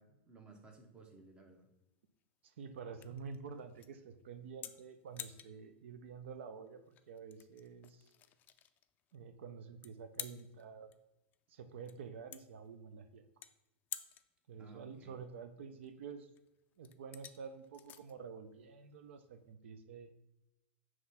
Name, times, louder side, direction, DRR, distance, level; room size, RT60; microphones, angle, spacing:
voice 1, 0.0-1.7 14.6-15.2, right 3 dB, 15° right, 3 dB, 0.9 m, -58 dB
sound 1, 0.7-19.5, left 10 dB, 30° left, 0.3 m, -53 dB
voice 2, 2.4-8.1 9.1-10.9 11.5-13.3 14.5-16.3 16.8-20.1, right 6 dB, 85° right, 9 dB, 0.5 m, -49 dB
5.9 x 3.2 x 5.5 m, 0.91 s
supercardioid pair, 140°, 6 cm